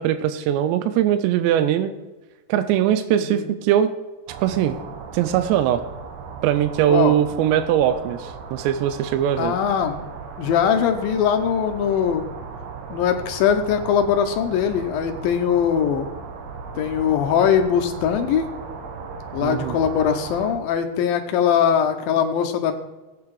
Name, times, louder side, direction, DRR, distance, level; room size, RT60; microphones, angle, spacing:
voice 1, 0.0-1.9 2.5-3.9 4.4-4.8 5.1-5.8 6.4-9.6 19.4-19.8, right 11 dB, 90° right, 10 dB, 2.9 m, -21 dB
voice 2, 3.2-3.6 6.9-7.2 9.4-10.0 10.4-12.3 12.9-16.1 16.8-18.5 19.3-22.7, left 8 dB, 75° left, 6 dB, 2.2 m, -21 dB
sound 1, 4.3-20.6, right 5 dB, 65° right, 2.6 m, -37 dB
16.0 x 8.6 x 4.8 m, 1.2 s
omnidirectional pair, 4.9 m